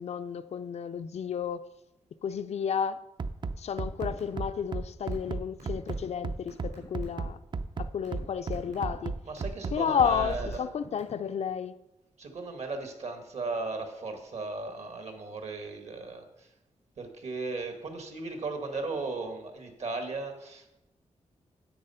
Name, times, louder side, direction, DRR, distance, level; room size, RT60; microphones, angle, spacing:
voice 1, 0.0-1.7 2.2-3.0 3.6-7.4 7.8-9.2 9.7-11.7, left 7 dB, 60° left, 0.4 m, -31 dB
Bass drum, 3.2-10.6, right 4 dB, 40° right, 0.5 m, -34 dB
sound 1, 3.9-4.4 4.6-7.2 7.7-8.2 8.5-8.9 9.4-9.7 10.0-11.3, right 3 dB, 85° right, 4.3 m, -52 dB
voice 2, 9.2-10.7 12.2-16.5 17.0-20.7, right 3 dB, 65° right, 1.8 m, -36 dB
10.0 x 7.7 x 5.6 m
wide cardioid pair, 130°, 12 cm